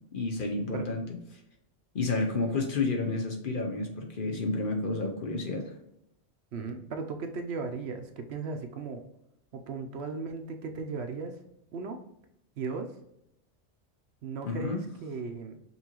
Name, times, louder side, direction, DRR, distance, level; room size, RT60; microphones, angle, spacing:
voice 1, 0.1-1.0 1.9-5.6 14.4-14.8, left 3 dB, 50° left, 3 dB, 0.8 m, -30 dB
voice 2, 6.5-9.0 9.5-11.4 11.7-12.0 12.6-13.0 14.2-15.6, right 4 dB, 70° right, 6 dB, 0.8 m, -36 dB
5.4 x 2.6 x 2.9 m, 0.78 s
omnidirectional pair, 1.2 m